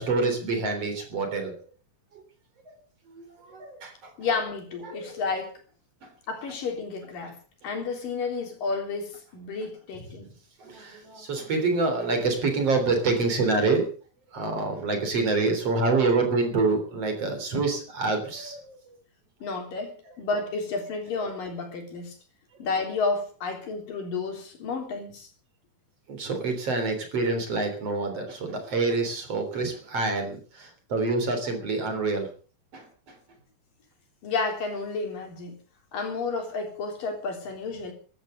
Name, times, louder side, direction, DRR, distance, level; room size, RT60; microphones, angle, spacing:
voice 1, 0.0-1.6 2.7-2.8 3.1-4.1 4.9-5.1 10.6-13.9 14.3-18.8 26.1-32.3 32.7-33.2, right 3 dB, 45° right, 6 dB, 4.5 m, -27 dB
voice 2, 4.2-5.5 6.3-7.4 7.6-10.3 19.4-22.2 22.6-25.3 34.2-35.6 35.9-37.9, left 4 dB, 75° left, 3 dB, 5.3 m, -31 dB
15.0 x 12.5 x 6.7 m, 0.41 s
omnidirectional pair, 3.9 m